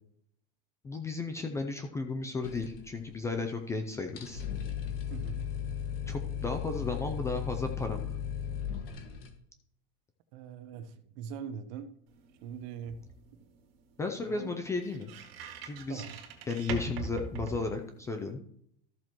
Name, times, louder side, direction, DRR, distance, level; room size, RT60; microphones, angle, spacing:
voice 1, 0.8-4.4 6.1-8.2 14.0-15.1 15.6-16.0 16.5-18.4, left 3 dB, 10° left, 5 dB, 0.4 m, -34 dB
sound 1, 2.4-3.4 3.7-3.8 4.1-9.3, left 8 dB, 80° left, 1.8 m, -36 dB
voice 2, 5.1-5.4 10.3-11.9 12.4-13.0 13.3-13.5 14.2-14.5 15.9-16.2, right 7 dB, 50° right, 10 dB, 1.0 m, -42 dB
sound 2, 12.1-18.3, right 5 dB, 85° right, 2.1 m, -43 dB
13.5 x 7.4 x 3.0 m, 0.69 s
supercardioid pair, 160°, 29 cm